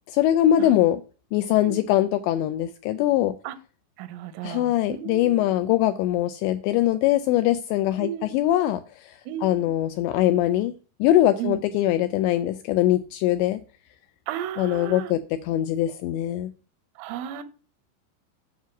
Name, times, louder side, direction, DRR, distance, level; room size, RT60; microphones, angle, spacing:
voice 1, 0.1-1.0 1.3-3.3 4.4-10.7 11.0-13.6 14.6-16.5, left 13 dB, 85° left, 10 dB, 2.5 m, -22 dB
voice 2, 4.0-5.7 8.0-8.4 9.3-9.7 11.4-11.6 14.3-15.1 17.0-17.4, right 10 dB, 85° right, 12 dB, 3.4 m, -34 dB
9.6 x 5.6 x 5.8 m, 0.36 s
omnidirectional pair, 5.6 m